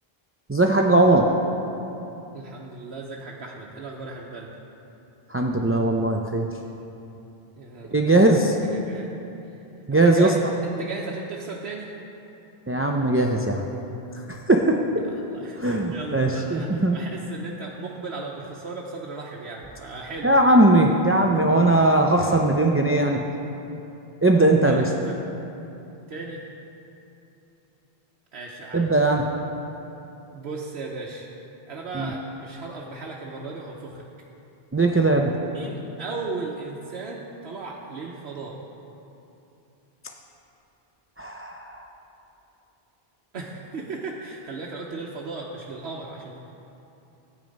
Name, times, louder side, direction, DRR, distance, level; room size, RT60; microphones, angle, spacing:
voice 1, 0.5-1.3 5.3-6.5 7.9-8.6 9.9-10.3 12.7-13.6 14.3-14.8 15.6-17.0 20.2-23.2 24.2-24.8 28.7-29.2 31.9-32.1 34.7-35.3 41.2-41.8, right 2 dB, 20° right, 1 dB, 0.4 m, -19 dB
voice 2, 2.3-4.5 7.6-8.4 8.7-9.1 9.5-9.6 9.9-10.4 10.8-12.0 15.1-20.3 22.1-22.4 24.6-25.3 26.1-26.4 28.3-28.9 30.3-31.3 31.7-34.0 35.5-38.6 43.3-46.4, right 3 dB, 85° right, -3 dB, 1.1 m, -36 dB
12.5 x 9.0 x 5.3 m, 2.9 s
omnidirectional pair, 1.1 m